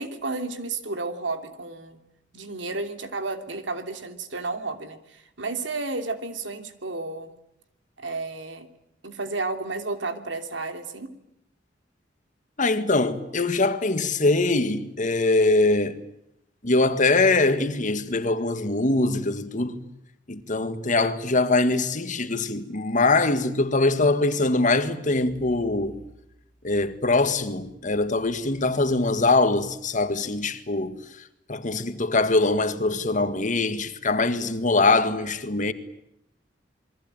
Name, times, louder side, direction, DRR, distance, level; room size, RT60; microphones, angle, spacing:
voice 1, 0.0-2.0 2.3-7.4 8.0-8.7 9.0-11.1, right 3 dB, 80° right, 3.0 m, -32 dB
voice 2, 12.6-16.0 16.6-19.8 20.3-26.0 26.6-31.0 31.5-35.7, left 2 dB, 45° left, 1.8 m, -23 dB
28.0 x 22.5 x 9.1 m
head